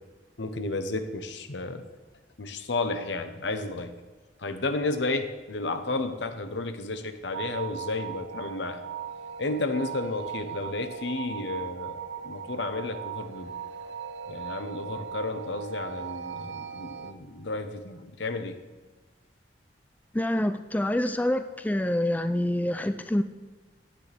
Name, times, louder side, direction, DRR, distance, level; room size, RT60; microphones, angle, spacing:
voice 1, 0.4-1.8 2.4-3.9 4.4-8.8 9.4-13.5 14.3-18.6, left 2 dB, 80° left, 9 dB, 1.0 m, -32 dB
sound 1, 7.3-17.1, right 7 dB, 85° right, 0.7 m, -38 dB
voice 2, 20.1-23.2, left 1 dB, 10° left, 10 dB, 0.3 m, -26 dB
15.5 x 9.8 x 3.5 m, 1.3 s
head